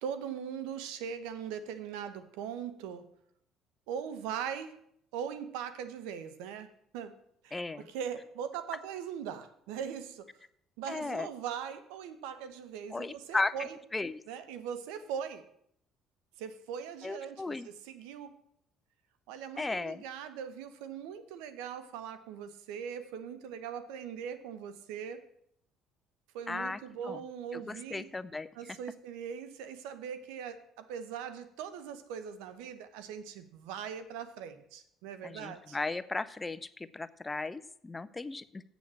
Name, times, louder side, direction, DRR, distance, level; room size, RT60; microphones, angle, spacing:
voice 1, 0.0-3.1 3.9-4.7 5.1-7.2 7.4-10.3 10.8-13.8 14.3-15.5 16.4-18.4 19.3-25.3 26.3-28.1 28.5-35.8, right 8 dB, 85° right, 11 dB, 0.9 m, -40 dB
voice 2, 7.5-7.9 10.9-11.3 12.9-14.2 17.0-17.7 19.6-20.0 26.5-26.8 27.1-27.2 27.5-28.5 35.2-38.6, left 3 dB, 20° left, 14 dB, 0.5 m, -36 dB
7.4 x 7.1 x 7.4 m, 0.70 s
supercardioid pair, 85°, 0 cm